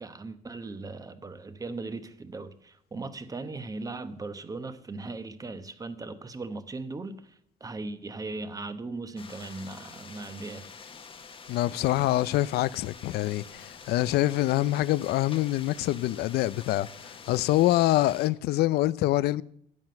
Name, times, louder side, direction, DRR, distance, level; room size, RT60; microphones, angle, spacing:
voice 1, 0.0-10.7, right 3 dB, 20° right, 0.9 m, -38 dB
sound 1, 9.2-18.3, left 5 dB, 30° left, 1.1 m, -47 dB
voice 2, 11.5-19.4, left 15 dB, 70° left, 0.4 m, -25 dB
10.5 x 7.5 x 7.8 m
cardioid pair, 110°, 17 cm